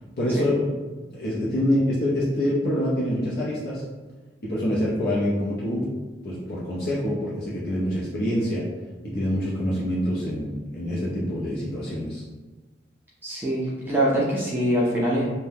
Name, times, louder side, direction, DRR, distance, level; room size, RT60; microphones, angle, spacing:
voice 1, 0.2-0.6 1.1-3.8 4.4-5.9 6.2-8.7 9.0-12.2, left 1 dB, 60° left, -7 dB, 0.6 m, -26 dB
voice 2, 13.2-15.2, right 1 dB, 10° right, -7 dB, 0.5 m, -24 dB
2.7 x 2.1 x 3.4 m, 1.3 s
head